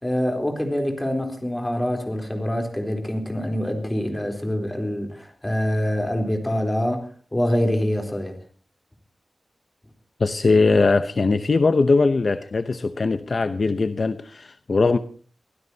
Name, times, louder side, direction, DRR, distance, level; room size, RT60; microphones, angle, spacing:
voice 1, 0.0-8.4, equal, 15° left, 3.8 m, -25 dB
voice 2, 10.2-15.0, left 3 dB, 50° left, 0.8 m, -20 dB
24.5 x 16.0 x 2.9 m
wide cardioid pair, 130°, 0 cm